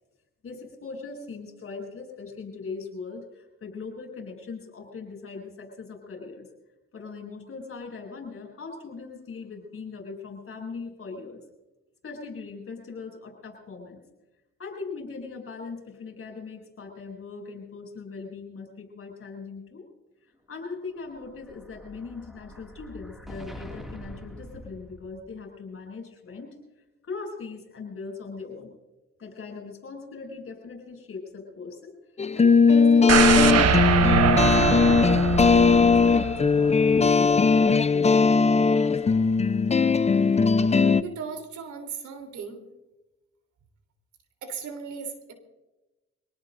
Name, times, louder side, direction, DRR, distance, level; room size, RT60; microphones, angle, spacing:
voice 1, 0.4-6.5 6.9-11.4 12.0-14.0 14.6-19.9 20.5-26.6 27.0-28.7 29.2-31.9 32.3-34.0 34.4-39.2, left 4 dB, 45° left, 1 dB, 7.6 m, -40 dB
Explosion, 20.8-25.5, equal, ahead, 2.4 m, -44 dB
sound 1, 32.2-41.0, left 5 dB, 20° left, 0.6 m, -19 dB
sound 2, 33.1-37.1 37.4-37.5, right 7 dB, 55° right, 1.1 m, -23 dB
voice 2, 41.0-42.6 44.4-45.3, right 6 dB, 80° right, 5 dB, 3.5 m, -37 dB
25.0 x 19.0 x 2.7 m, 1.0 s
cardioid pair, 90°, 30 cm